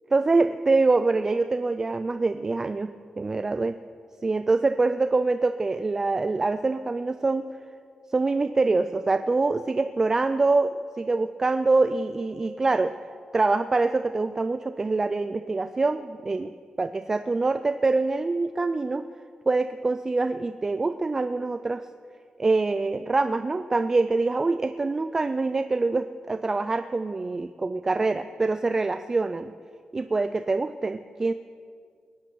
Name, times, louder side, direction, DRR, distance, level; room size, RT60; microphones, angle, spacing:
voice 1, 0.1-2.9 3.2-3.8 4.2-7.4 8.1-10.7 11.0-13.0 13.3-19.1 19.5-21.9 22.4-29.5 29.9-31.3, right 3 dB, 20° right, 10 dB, 0.3 m, -25 dB
21.0 x 9.0 x 6.1 m, 2.2 s
wide cardioid pair, 180°, 2 cm